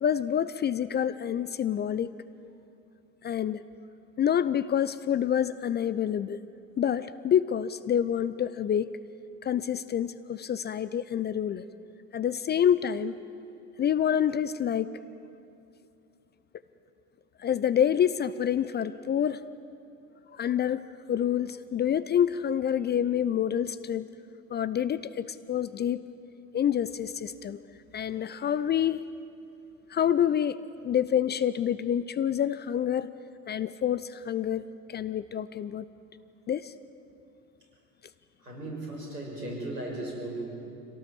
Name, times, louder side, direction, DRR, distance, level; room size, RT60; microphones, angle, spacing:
voice 1, 0.0-2.1 3.2-3.6 4.2-6.4 6.8-8.9 9.4-11.6 12.1-13.2 13.8-14.9 17.4-19.4 20.3-20.8 21.1-24.1 24.5-26.0 26.5-27.6 27.9-29.0 29.9-30.6 30.8-33.1 33.5-35.8 36.5-36.7, left 9 dB, 20° left, 15 dB, 0.5 m, -27 dB
voice 2, 38.4-40.4, right 1 dB, 85° right, -1 dB, 6.3 m, -36 dB
26.5 x 17.5 x 7.4 m, 2.7 s
figure-of-eight pair, 70°, 48 cm